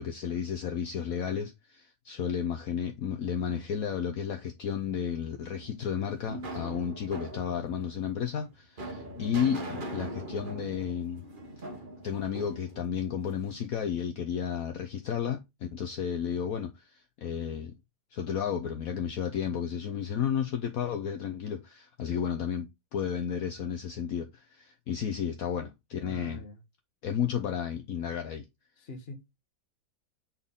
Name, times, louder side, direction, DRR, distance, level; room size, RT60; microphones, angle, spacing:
voice 1, 0.0-11.3 12.0-17.7 18.1-26.4 27.0-28.4, left 8 dB, 65° left, 1.2 m, -32 dB
sound 1, 5.6-13.7, right 1 dB, 35° right, 1.2 m, -41 dB
voice 2, 9.2-9.5 26.0-26.6 28.8-29.4, left 1 dB, 40° left, 1.4 m, -44 dB
7.5 x 4.1 x 3.6 m
omnidirectional pair, 1.7 m